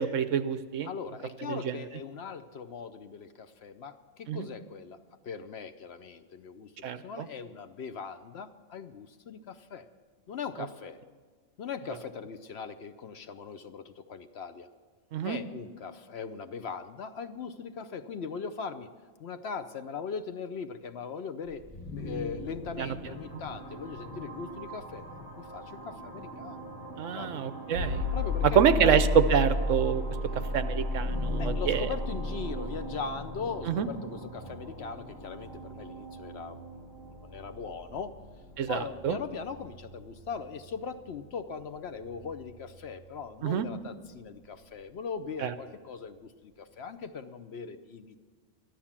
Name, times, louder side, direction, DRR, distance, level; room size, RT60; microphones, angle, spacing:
voice 1, 0.0-0.9 1.5-1.7 4.3-4.5 6.8-7.3 15.1-15.4 22.8-22.9 27.0-28.0 28.5-30.0 30.3-31.9 33.7-33.9 38.6-39.2 43.4-43.7 45.4-45.5, right 8 dB, 70° right, 12 dB, 1.0 m, -27 dB
voice 2, 0.8-5.0 5.2-9.9 10.3-11.0 11.6-14.7 15.2-18.9 19.2-21.6 21.9-25.1 25.3-26.6 27.1-27.4 28.1-29.0 31.4-36.9 37.2-38.1 38.7-48.2, left 5 dB, 60° left, 10 dB, 0.8 m, -40 dB
sound 1, 21.5-39.1, right 1 dB, 15° left, 1.2 m, -43 dB
sound 2, 27.7-43.7, left 3 dB, 55° right, 6.2 m, -35 dB
14.0 x 11.5 x 7.2 m, 1.5 s
omnidirectional pair, 1.4 m